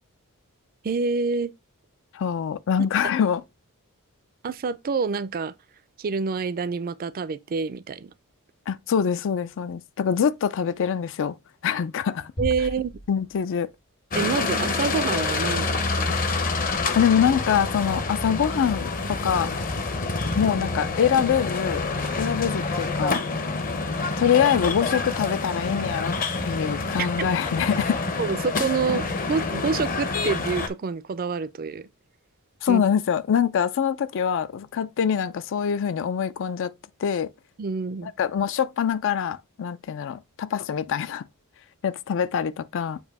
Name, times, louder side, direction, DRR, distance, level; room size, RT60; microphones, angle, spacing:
voice 1, 0.8-1.5 4.4-5.5 6.0-8.1 12.4-12.9 14.1-16.2 27.0-27.1 28.2-31.9 32.7-32.8 37.6-38.1, right 5 dB, 40° right, 0.4 m, -27 dB
voice 2, 2.1-3.4 8.7-11.4 11.6-12.3 13.1-13.7 16.9-19.5 20.3-21.9 22.2-23.2 24.2-26.2 26.4-28.0 32.6-36.7 37.0-37.3 38.0-41.2 41.8-43.0, left 8 dB, 60° left, 0.4 m, -24 dB
sound 1, 12.4-13.8, equal, 85° left, 3.4 m, -35 dB
sound 2, 14.1-30.7, left 3 dB, 40° left, 0.8 m, -27 dB
7.1 x 2.7 x 5.3 m
head